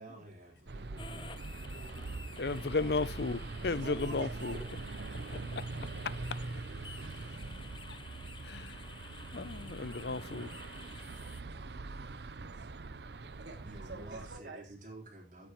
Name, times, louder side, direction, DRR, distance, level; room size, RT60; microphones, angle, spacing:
voice 1, 0.0-3.3 3.5-4.2 5.1-5.2 7.0-7.2 13.6-15.5, right 1 dB, 45° right, 4.2 m, -52 dB
sound 1, 0.7-14.4, right 3 dB, 70° right, 0.6 m, -43 dB
sound 2, 1.0-11.4, left 5 dB, 25° left, 0.9 m, -52 dB
voice 2, 2.4-4.6 5.5-5.6 7.9-8.0 8.4-8.8 9.3-10.5, left 3 dB, 65° left, 0.6 m, -34 dB
voice 3, 3.7-4.7 10.2-10.8 11.9-12.7 13.4-13.6 13.9-14.6, right 2 dB, 90° right, 2.8 m, -47 dB
16.0 x 9.4 x 3.1 m
head